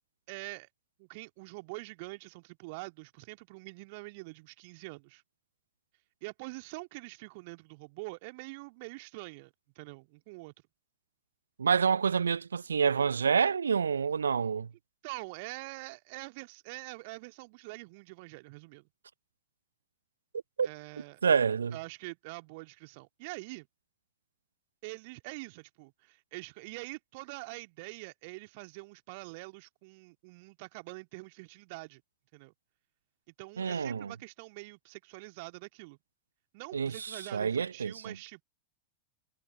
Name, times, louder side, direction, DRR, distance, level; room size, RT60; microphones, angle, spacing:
voice 1, 0.3-0.7 1.0-5.2 6.2-10.5 15.0-18.9 20.6-21.2 21.7-23.7 24.8-32.0 32.3-32.5 33.4-36.0 36.5-38.4, right 27 dB, 50° right, 2.1 m, -45 dB
voice 2, 11.6-14.7 20.6-20.7 21.2-21.8 33.6-34.1 36.7-38.2, right 6 dB, 70° right, 0.3 m, -28 dB
figure-of-eight pair, 90°, 0 cm